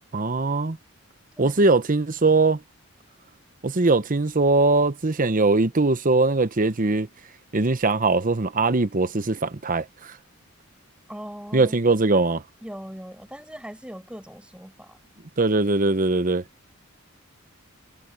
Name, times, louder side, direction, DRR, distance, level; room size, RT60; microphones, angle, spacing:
voice 1, 0.1-0.8 1.4-2.6 3.6-7.1 7.5-9.9 11.5-12.4 15.4-16.4, right 3 dB, 40° right, 0.9 m, -21 dB
voice 2, 11.1-11.8 12.6-15.0, equal, 5° right, 5.8 m, -40 dB
head